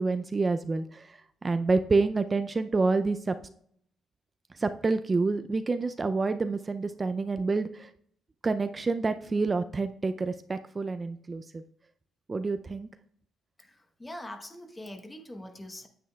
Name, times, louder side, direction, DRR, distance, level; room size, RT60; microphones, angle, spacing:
voice 1, 0.0-3.4 4.5-7.9 8.4-11.6 12.3-12.9, right 3 dB, 30° right, 9 dB, 0.4 m, -28 dB
voice 2, 13.6-15.9, left 1 dB, 15° left, 6 dB, 1.1 m, -43 dB
9.2 x 7.8 x 2.3 m, 0.66 s
cardioid pair, 90°, 0 cm